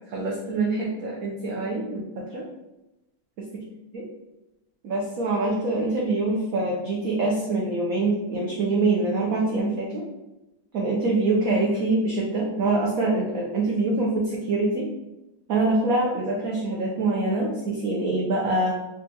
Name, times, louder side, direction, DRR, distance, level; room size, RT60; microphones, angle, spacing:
voice 1, 0.1-2.4 3.4-3.6 3.9-4.0 4.8-10.1 10.7-14.9 15.5-18.7, right 2 dB, 85° right, -2 dB, 0.7 m, -25 dB
4.2 x 2.2 x 2.7 m, 0.98 s
omnidirectional pair, 2.1 m